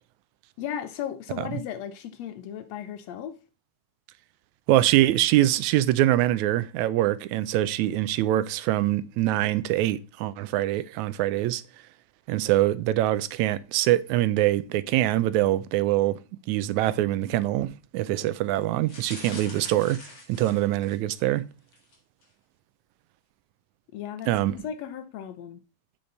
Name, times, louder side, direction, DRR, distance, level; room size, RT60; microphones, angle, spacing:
voice 1, 0.6-3.4 19.3-19.5 23.9-25.6, left 9 dB, 70° left, 1.9 m, -36 dB
voice 2, 4.7-11.6 12.3-16.2 16.5-20.0 20.3-21.4 24.3-24.6, right 14 dB, 85° right, 2.0 m, -24 dB
sound 1, 18.9-21.2 21.7-22.0 22.2-22.3, left 2 dB, 45° left, 4.3 m, -44 dB
8.0 x 6.8 x 4.0 m
omnidirectional pair, 3.3 m